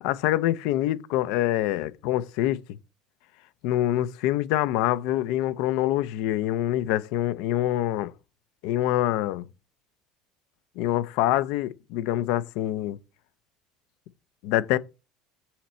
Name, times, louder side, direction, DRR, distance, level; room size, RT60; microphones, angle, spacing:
voice 1, 0.0-2.8 3.6-8.1 8.6-9.5 10.8-13.0 14.4-14.8, left 13 dB, 65° left, 0.5 m, -25 dB
6.1 x 5.8 x 4.3 m
cardioid pair, 170°, 0 cm